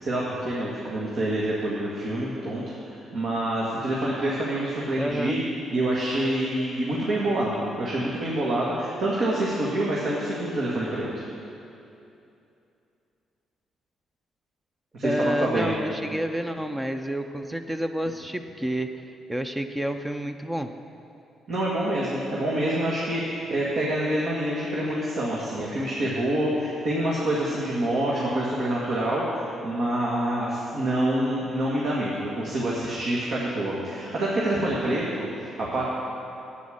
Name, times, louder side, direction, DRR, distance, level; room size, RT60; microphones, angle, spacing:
voice 1, 0.1-5.4 5.7-11.2 14.9-15.7 21.5-35.3 35.6-35.8, right 1 dB, 60° right, -6 dB, 1.8 m, -26 dB
voice 2, 5.0-5.4 15.0-19.0 19.3-20.7, equal, 10° right, 7 dB, 0.5 m, -29 dB
9.3 x 8.3 x 6.5 m, 2.7 s
cardioid pair, 90°, 0 cm